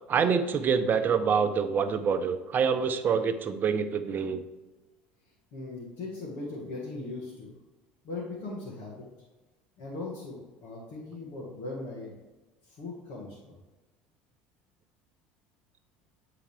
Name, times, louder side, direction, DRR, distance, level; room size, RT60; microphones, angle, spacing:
voice 1, 0.1-4.4, right 6 dB, 40° right, 10 dB, 0.7 m, -26 dB
voice 2, 5.5-7.5 8.0-9.1 9.8-12.2 12.6-13.6, left 2 dB, 65° left, -6 dB, 1.8 m, -39 dB
8.5 x 3.9 x 3.3 m, 1.1 s
hypercardioid pair, 75°, 5 cm